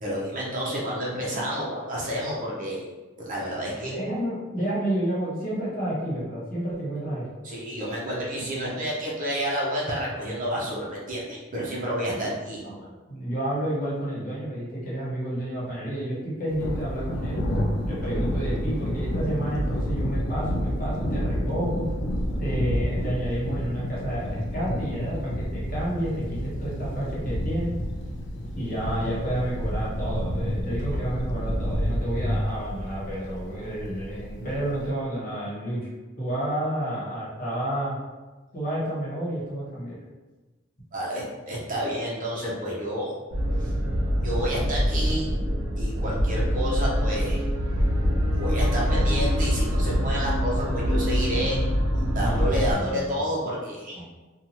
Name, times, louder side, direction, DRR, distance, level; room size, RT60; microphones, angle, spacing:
voice 1, 0.0-2.8 3.2-4.0 7.4-12.6 40.9-43.1 43.6-43.7 44.2-45.2 45.8-47.4 48.3-51.6 52.0-54.0, equal, 40° right, -5 dB, 0.6 m, -30 dB
voice 2, 3.8-7.3 12.6-17.4 17.8-21.9 22.4-27.8 28.5-35.8 36.2-38.0 38.5-40.0 52.2-53.1 53.9-54.0, right 1 dB, 45° left, -7 dB, 1.1 m, -30 dB
Thunder, 16.5-34.9, equal, 60° left, 0.4 m, -29 dB
sound 1, 43.3-52.7, equal, 80° right, 0.7 m, -24 dB
2.7 x 2.3 x 2.9 m, 1.2 s
head